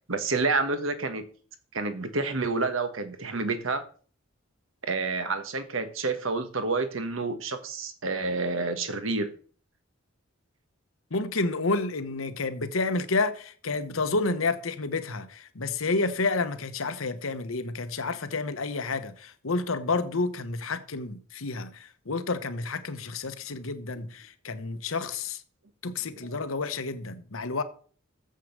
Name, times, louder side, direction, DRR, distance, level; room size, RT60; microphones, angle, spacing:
voice 1, 0.1-1.3 1.7-3.8 4.8-9.3, right 3 dB, 80° right, 1.3 m, -29 dB
voice 2, 11.1-25.4 25.8-27.6, left 3 dB, 85° left, 1.1 m, -30 dB
7.6 x 6.4 x 6.7 m
head